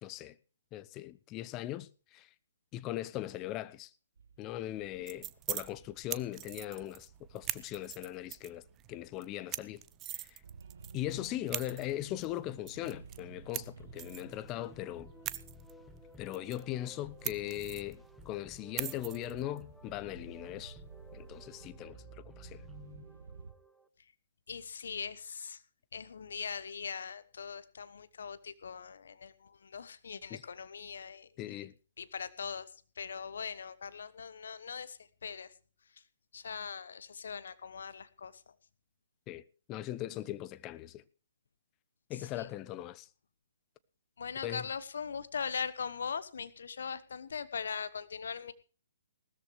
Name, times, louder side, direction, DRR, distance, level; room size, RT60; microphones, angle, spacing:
voice 1, 0.0-0.4 0.7-2.3 2.7-3.9 4.4-8.6 8.9-9.8 10.1-10.4 10.9-15.1 16.2-20.8 21.1-22.0 22.4-22.6 30.3-30.4 31.4-31.7 39.3-39.4 39.7-41.0 42.1-43.1 44.4-44.7, left 14 dB, 25° left, 0.8 m, -39 dB
sound 1, 4.2-23.5, right 5 dB, 70° right, 1.3 m, -54 dB
sound 2, 4.8-21.7, right 14 dB, 25° right, 0.7 m, -45 dB
sound 3, 13.8-23.9, left 1 dB, 5° left, 1.1 m, -55 dB
voice 2, 24.5-25.6 25.9-31.3 32.0-32.7 33.0-35.5 36.3-38.4 42.2-42.5 44.2-48.5, left 6 dB, 65° left, 1.1 m, -40 dB
18.5 x 13.5 x 3.2 m
figure-of-eight pair, 130°, 0 cm